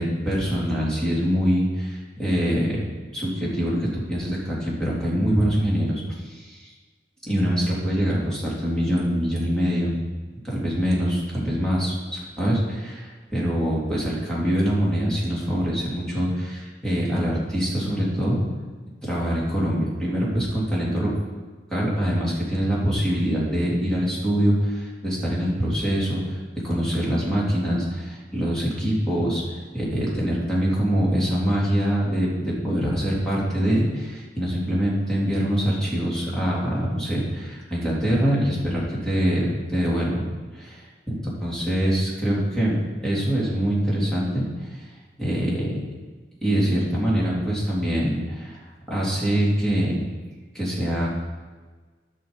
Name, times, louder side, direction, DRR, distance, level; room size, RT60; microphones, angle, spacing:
voice 1, 0.0-2.8 3.1-6.7 7.2-9.9 10.4-18.5 19.0-21.1 21.7-26.3 26.6-40.2 40.5-44.4 44.7-44.9 45.2-45.7 46.4-48.6 48.9-50.0 50.5-51.1, equal, 5° left, -7 dB, 3.3 m, -24 dB
12.5 x 6.2 x 5.3 m, 1.4 s
head